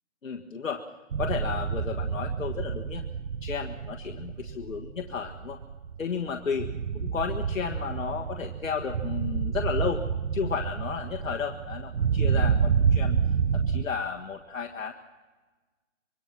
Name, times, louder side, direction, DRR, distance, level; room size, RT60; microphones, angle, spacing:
voice 1, 0.2-0.8 1.2-3.0 3.4-5.6 6.0-10.0 10.3-13.2 13.5-14.9, left 6 dB, 80° left, 2 dB, 1.6 m, -33 dB
sound 1, 1.1-13.9, right 6 dB, 75° right, 1.0 m, -29 dB
25.5 x 22.5 x 5.9 m, 1.3 s
hypercardioid pair, 170°, 39 cm